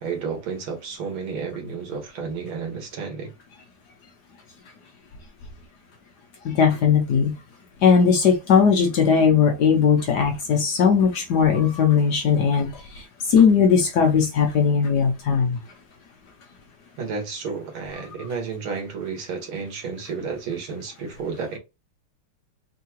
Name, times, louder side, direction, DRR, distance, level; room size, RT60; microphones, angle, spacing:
voice 1, 0.0-3.3 17.0-21.6, right 5 dB, 70° right, 2.2 m, -31 dB
voice 2, 6.5-7.3 7.8-12.7 13.3-15.6, left 6 dB, 65° left, 1.1 m, -18 dB
4.6 x 2.9 x 2.9 m
omnidirectional pair, 2.4 m